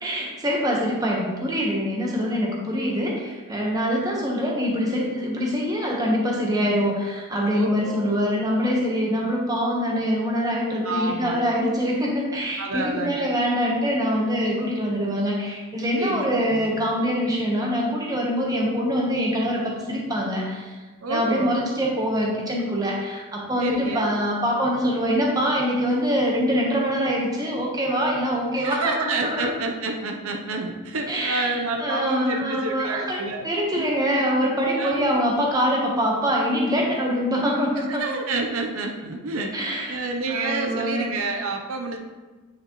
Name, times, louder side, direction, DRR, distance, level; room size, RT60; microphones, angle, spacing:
voice 1, 0.0-20.8 21.1-29.5 31.1-38.0 39.5-41.1, equal, 15° right, -2 dB, 1.0 m, -24 dB
voice 2, 7.5-8.0 10.8-11.6 12.6-13.3 16.0-16.2 16.5-16.7 21.0-21.5 23.6-24.2 28.5-33.5 33.7-33.8 34.8-35.3 37.8-42.0, right 3 dB, 75° right, 3 dB, 0.7 m, -29 dB
9.0 x 5.0 x 3.0 m, 1.3 s
head